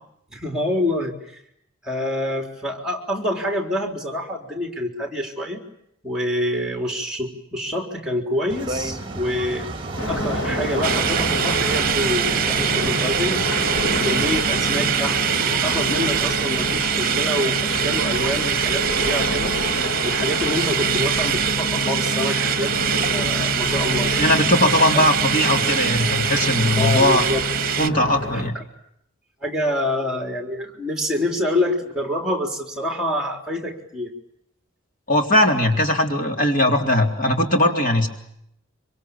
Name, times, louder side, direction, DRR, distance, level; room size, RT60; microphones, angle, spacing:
voice 1, 0.3-1.4 1.8-5.6 6.0-9.8 10.1-13.4 13.9-19.5 20.0-22.7 23.1-24.3 24.9-25.1 26.8-27.4 28.3-28.6 29.4-34.1, left 1 dB, 5° right, 3 dB, 4.0 m, -26 dB
sound 1, 8.5-23.1, right 2 dB, 25° right, 2.2 m, -32 dB
sound 2, 10.0-28.5, left 2 dB, 65° left, 1.6 m, -28 dB
sound 3, 10.8-27.9, right 9 dB, 45° right, 1.2 m, -24 dB
voice 2, 24.2-27.3 27.8-28.5 35.1-38.1, left 1 dB, 40° left, 3 dB, 3.6 m, -19 dB
26.0 x 26.0 x 8.8 m, 0.74 s
head